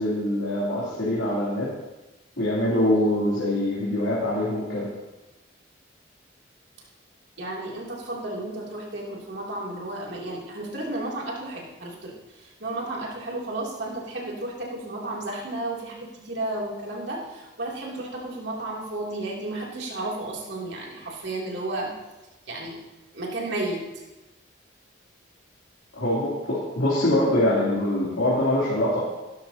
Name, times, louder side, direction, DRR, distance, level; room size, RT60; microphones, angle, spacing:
voice 1, 0.0-1.7 2.4-4.9 25.9-29.0, left 1 dB, 85° left, -8 dB, 3.2 m, -24 dB
voice 2, 7.4-21.9 22.5-22.8 23.1-24.0, right 2 dB, 65° right, -3 dB, 3.0 m, -33 dB
16.5 x 12.5 x 2.9 m, 1.1 s
head